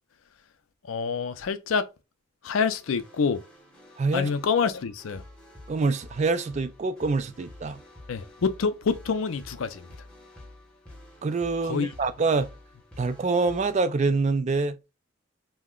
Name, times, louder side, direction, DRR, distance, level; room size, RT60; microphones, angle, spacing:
voice 1, 0.8-1.9 2.4-3.4 4.1-5.2 8.1-9.9 11.6-11.9, left 5 dB, 90° left, 0.4 m, -27 dB
sound 1, 2.8-13.8, left 1 dB, 5° left, 0.8 m, -49 dB
voice 2, 4.0-4.3 5.7-7.8 11.2-12.5 13.0-14.8, right 3 dB, 35° right, 0.3 m, -25 dB
2.8 x 2.1 x 3.6 m
head